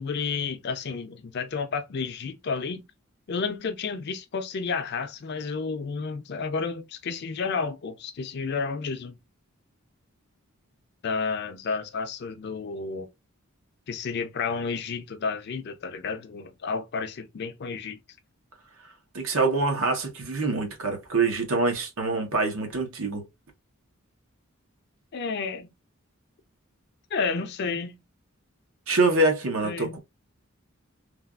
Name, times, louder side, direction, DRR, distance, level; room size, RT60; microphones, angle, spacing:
voice 1, 0.0-2.8 3.3-9.2 11.0-13.1 13.9-18.0 25.1-25.7 27.1-28.0 29.6-30.0, left 5 dB, 50° left, 0.4 m, -31 dB
voice 2, 19.1-23.2 28.9-30.0, right 3 dB, 75° right, 0.9 m, -25 dB
3.3 x 2.3 x 2.3 m
head